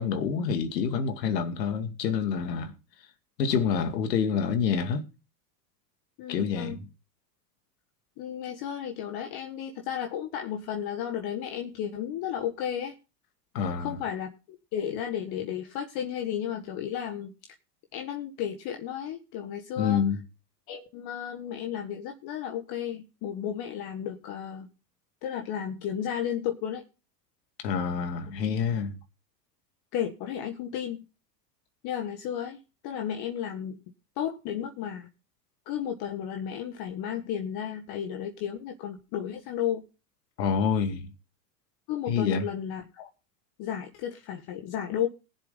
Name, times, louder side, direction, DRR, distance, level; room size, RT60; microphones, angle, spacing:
voice 1, 0.0-2.7 3.4-5.1 6.3-6.9 13.5-13.9 19.8-20.2 27.6-29.0 40.4-41.1 42.1-42.5, left 6 dB, 80° left, 2.4 m, -27 dB
voice 2, 6.2-6.8 8.2-12.9 13.8-14.3 14.7-17.3 17.9-20.0 20.7-24.7 25.2-26.8 29.9-31.0 31.8-33.8 34.2-35.1 35.7-39.9 41.9-43.1 43.6-45.1, left 9 dB, 50° left, 1.7 m, -33 dB
20.5 x 7.5 x 4.0 m
hypercardioid pair, 110°, 49 cm